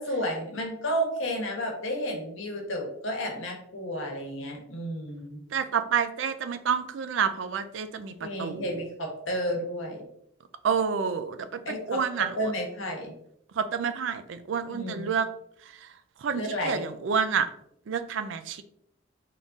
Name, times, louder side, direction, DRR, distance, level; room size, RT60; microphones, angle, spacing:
voice 1, 0.0-5.4 8.2-10.1 11.6-13.1 14.7-15.1 16.3-16.9, equal, 85° left, 0 dB, 1.2 m, -32 dB
voice 2, 5.5-8.8 10.6-12.5 13.6-15.3 16.2-17.5 17.9-18.6, right 6 dB, 75° right, 11 dB, 0.4 m, -29 dB
3.7 x 2.6 x 3.5 m, 0.71 s
head